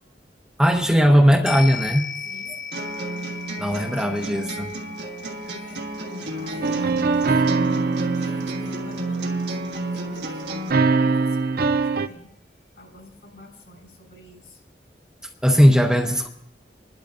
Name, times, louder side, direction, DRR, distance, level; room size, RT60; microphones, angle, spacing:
voice 1, 0.6-2.0 3.6-4.7 15.4-16.3, equal, 5° right, 2 dB, 0.8 m, -18 dB
sound 1, 1.5-10.0 10.4-10.5, left 6 dB, 45° left, 1.0 m, -38 dB
voice 2, 2.2-2.5 5.4-5.8 6.3-7.6 8.2-12.3 12.7-14.6, left 1 dB, 70° left, 1 dB, 4.9 m, -47 dB
sound 2, 2.7-10.7, right 2 dB, 75° right, 1.7 m, -31 dB
sound 3, 6.6-9.8 10.7-12.1, right 4 dB, 55° right, 0.5 m, -23 dB
27.5 x 12.0 x 2.6 m, 0.78 s
head